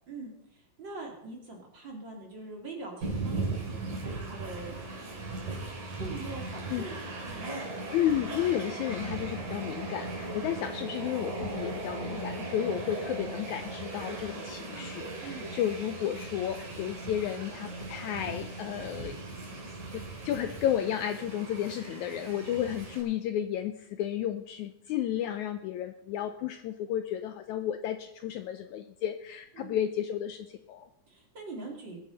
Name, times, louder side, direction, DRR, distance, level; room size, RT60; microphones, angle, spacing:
voice 1, 0.1-3.4 3.6-5.2 5.5-7.5 15.2-15.5 29.5-29.8 31.1-32.0, right 3 dB, 35° right, 0 dB, 3.0 m, -43 dB
Train, 3.0-23.0, right 2 dB, 60° right, 4.7 m, -38 dB
voice 2, 7.9-19.5 19.9-30.9, left 10 dB, 90° left, 8 dB, 1.7 m, -32 dB
20.5 x 10.0 x 4.1 m, 0.78 s
omnidirectional pair, 4.1 m